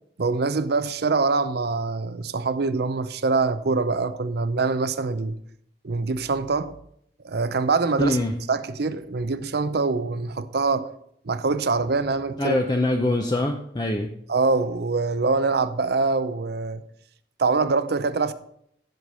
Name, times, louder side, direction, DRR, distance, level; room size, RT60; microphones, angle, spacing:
voice 1, 0.2-5.4 5.8-6.8 7.2-8.2 8.5-10.9 11.2-12.6 14.3-16.8 17.4-18.3, right 4 dB, 65° right, 0.6 m, -24 dB
voice 2, 8.0-8.4 12.4-14.1, left 1 dB, 25° left, 0.7 m, -24 dB
10.5 x 6.6 x 5.5 m
head